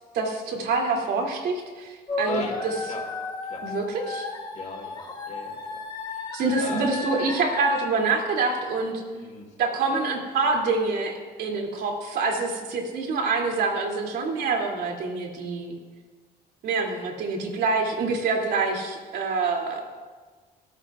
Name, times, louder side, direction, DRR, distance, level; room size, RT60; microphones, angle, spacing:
voice 1, 0.1-2.7 3.6-4.3 6.3-8.9 9.6-15.7 16.6-19.8, right 4 dB, 70° right, 0 dB, 2.9 m, -26 dB
sound 1, 2.1-7.9, left 3 dB, 25° left, 2.0 m, -33 dB
voice 2, 2.2-3.1 3.5-3.7 4.5-5.8 6.1-6.3 6.6-6.9 9.1-9.5 17.0-17.1, left 4 dB, 45° left, -1 dB, 4.1 m, -39 dB
23.0 x 13.5 x 2.5 m, 1.4 s
cardioid pair, 110°, 17 cm